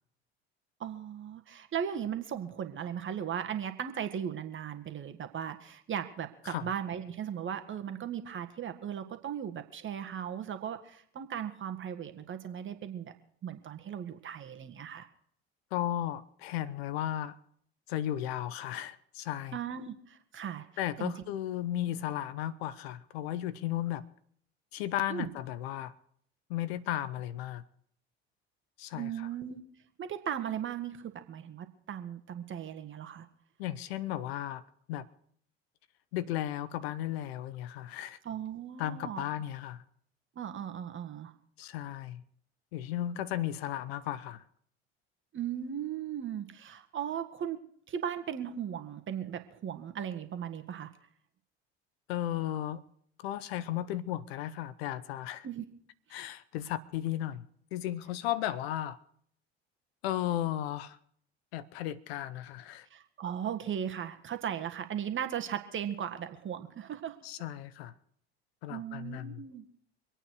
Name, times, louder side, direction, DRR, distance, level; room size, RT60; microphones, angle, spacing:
voice 1, 0.8-13.1 13.4-15.1 19.5-20.7 21.0-21.1 25.1-25.3 28.9-29.6 30.0-33.3 38.3-39.3 40.4-41.3 45.3-47.6 47.9-50.9 55.4-55.7 56.1-56.2 62.9-67.2 68.7-69.7, right 9 dB, 40° right, 1.8 m, -37 dB
voice 2, 15.7-17.4 17.9-19.6 20.8-24.1 24.7-25.9 26.5-27.6 28.8-29.1 33.6-34.6 34.9-35.1 36.1-38.2 38.8-39.8 41.6-42.2 42.7-44.4 52.1-52.8 53.2-55.5 56.1-57.5 57.7-59.0 60.0-61.0 61.5-62.9 67.2-67.9 68.6-69.4, left 12 dB, 70° left, 0.9 m, -35 dB
25.5 x 8.9 x 4.8 m
hypercardioid pair, 70°, 32 cm